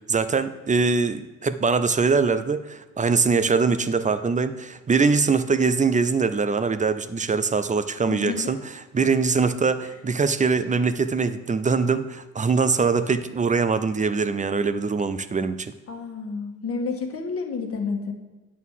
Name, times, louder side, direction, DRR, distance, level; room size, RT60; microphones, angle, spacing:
voice 1, 0.1-8.6 8.9-15.7, right 4 dB, 25° right, 12 dB, 0.6 m, -22 dB
voice 2, 8.1-8.5 9.8-9.9 15.9-18.1, left 4 dB, 50° left, 3 dB, 1.6 m, -30 dB
9.1 x 4.3 x 7.2 m, 1.2 s
cardioid pair, 90°, 30 cm